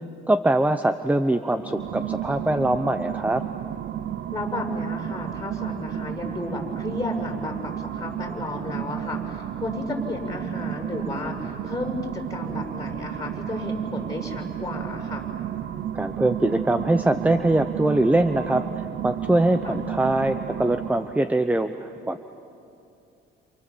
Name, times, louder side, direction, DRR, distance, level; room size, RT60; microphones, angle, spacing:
voice 1, 0.3-3.4 15.9-22.2, right 1 dB, 5° right, 10 dB, 0.9 m, -23 dB
sound 1, 1.6-21.3, right 11 dB, 65° right, 0.8 m, -32 dB
voice 2, 4.3-15.2 19.6-19.8, left 2 dB, 15° left, 2 dB, 6.4 m, -33 dB
28.5 x 28.5 x 7.4 m, 2.6 s
cardioid pair, 90°, 20 cm